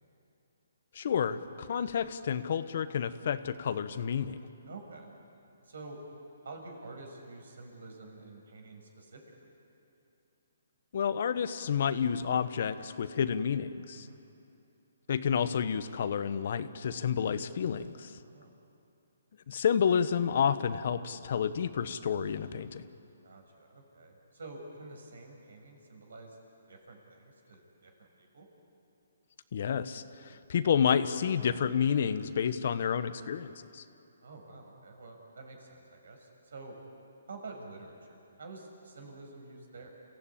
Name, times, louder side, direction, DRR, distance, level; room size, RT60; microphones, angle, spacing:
voice 1, 0.9-4.4 10.9-14.1 15.1-18.1 19.5-22.8 29.5-33.8, left 7 dB, 55° left, 12 dB, 1.1 m, -30 dB
voice 2, 4.7-5.1 5.6-6.0 6.4-9.5 13.9-14.2 18.2-18.5 23.2-26.4 26.7-28.5 34.2-36.8 37.3-39.9, right 3 dB, 75° right, 3 dB, 6.1 m, -48 dB
29.0 x 16.0 x 8.7 m, 2.7 s
hypercardioid pair, 155°, 0 cm